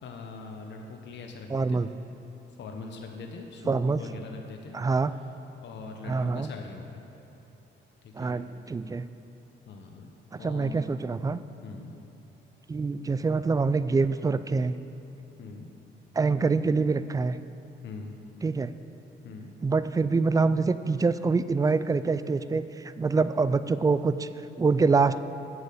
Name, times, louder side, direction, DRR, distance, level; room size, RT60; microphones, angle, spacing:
voice 1, 0.0-1.8 2.6-4.8 5.6-7.0 8.2-8.4 9.6-10.1 10.4-10.8 11.6-11.9 15.4-15.7 17.8-18.2 19.2-19.5, left 4 dB, 65° left, 3 dB, 0.9 m, -42 dB
voice 2, 1.5-1.9 3.7-4.0 4.7-5.1 6.1-6.5 8.2-9.0 10.4-11.4 12.7-14.8 16.2-17.4 18.4-18.7 19.6-22.7 23.0-24.3 24.6-25.2, right 4 dB, 20° right, 14 dB, 0.3 m, -25 dB
7.9 x 7.6 x 6.7 m, 2.9 s
cardioid pair, 90°, 20 cm